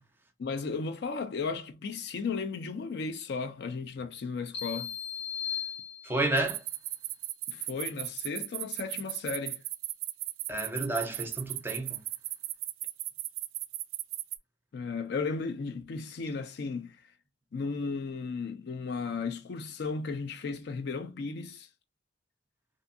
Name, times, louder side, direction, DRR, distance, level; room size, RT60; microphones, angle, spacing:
voice 1, 0.4-4.9 7.5-9.6 14.7-17.0 17.5-21.7, left 4 dB, 60° left, 0.4 m, -35 dB
sound 1, 4.5-6.5, left 8 dB, 90° left, 1.4 m, -37 dB
voice 2, 6.0-6.6 10.5-12.0, right 2 dB, 10° right, 0.5 m, -30 dB
sound 2, 6.4-14.4, right 16 dB, 90° right, 0.3 m, -36 dB
2.6 x 2.3 x 2.6 m
head